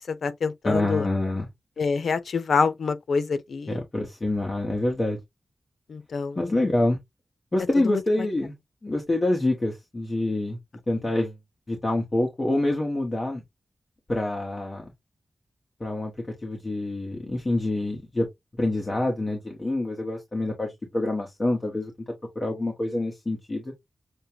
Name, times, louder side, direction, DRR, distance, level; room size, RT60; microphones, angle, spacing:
voice 1, 0.1-1.1 1.8-3.8 5.9-6.4 7.8-8.0, left 5 dB, 85° left, 0.6 m, -26 dB
voice 2, 0.6-1.5 3.7-5.2 6.4-7.0 7.5-8.5 8.8-10.6 10.9-11.4 11.7-13.4 14.1-14.9 15.8-16.1 16.4-18.3 18.6-21.9 22.3-23.7, left 2 dB, 30° left, 1.1 m, -26 dB
6.5 x 2.2 x 2.8 m
wide cardioid pair, 135°, 0 cm